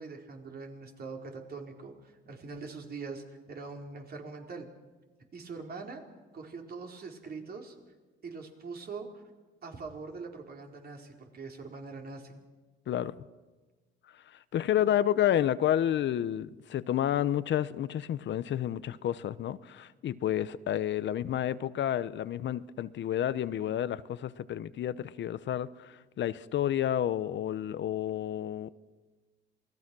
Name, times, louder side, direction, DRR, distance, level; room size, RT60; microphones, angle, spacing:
voice 1, 0.0-4.7 5.3-6.0 6.3-7.8 8.2-9.2 9.6-12.4, right 4 dB, 50° right, 4.6 m, -43 dB
voice 2, 12.9-13.2 14.1-28.7, left 11 dB, 65° left, 0.9 m, -30 dB
28.0 x 19.5 x 6.2 m
cardioid pair, 90°, 20 cm